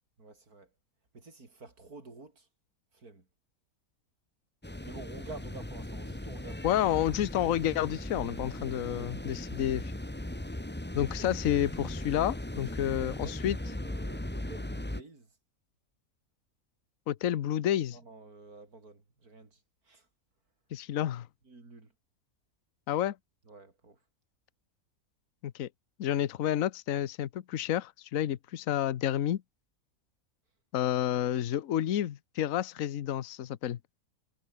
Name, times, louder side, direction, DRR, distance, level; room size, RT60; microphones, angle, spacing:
voice 1, 0.2-0.7 1.1-2.5 2.9-3.3 4.8-7.1 8.9-9.2 11.2-11.3 12.9-13.4 13.6-15.3 17.9-20.1 21.4-21.9 23.5-24.0, right 3 dB, 80° right, 4.8 m, -50 dB
sound 1, 4.6-15.0, left 1 dB, 5° left, 1.3 m, -38 dB
voice 2, 6.6-9.9 10.9-13.6 17.1-18.0 20.7-21.3 22.9-23.2 25.4-25.7 26.0-29.4 30.7-33.8, left 11 dB, 65° left, 1.2 m, -30 dB
omnidirectional pair, 1.6 m